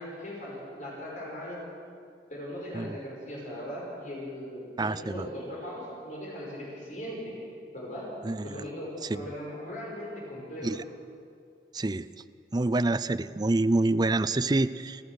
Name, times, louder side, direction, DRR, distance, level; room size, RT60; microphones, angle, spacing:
voice 1, 0.0-1.6 2.3-7.4 7.7-8.2 8.4-10.8, equal, 45° left, -4 dB, 5.5 m, -39 dB
voice 2, 4.8-5.3 8.2-8.6 9.1-9.3 10.6-10.8 11.7-12.1 12.5-15.0, right 2 dB, 25° right, 14 dB, 0.5 m, -27 dB
29.0 x 14.0 x 6.5 m, 2.3 s
head